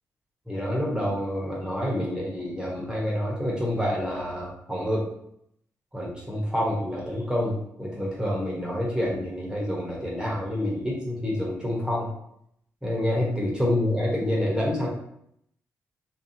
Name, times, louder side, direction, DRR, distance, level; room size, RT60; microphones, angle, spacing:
voice 1, 0.5-5.1 5.9-12.1 12.8-14.9, left 1 dB, 10° right, -4 dB, 1.2 m, -27 dB
3.2 x 2.8 x 2.8 m, 0.74 s
hypercardioid pair, 40°, 7 cm